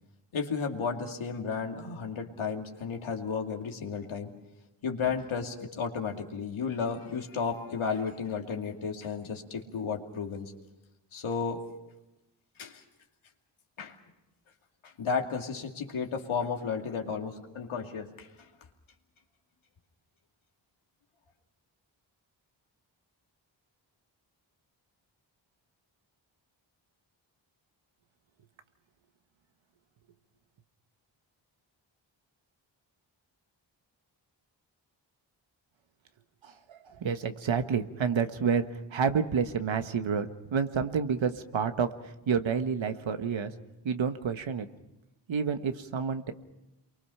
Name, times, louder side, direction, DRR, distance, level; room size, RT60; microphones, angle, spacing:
voice 1, 0.3-4.3 4.8-10.5 11.1-11.6 12.6-12.8 13.8-14.0 14.8-18.3, left 5 dB, 85° left, 2 dB, 2.6 m, -33 dB
voice 2, 36.4-43.5 43.8-44.7 45.3-46.3, right 6 dB, 70° right, 8 dB, 1.5 m, -29 dB
28.5 x 23.5 x 5.7 m, 0.95 s
cardioid pair, 60°, 47 cm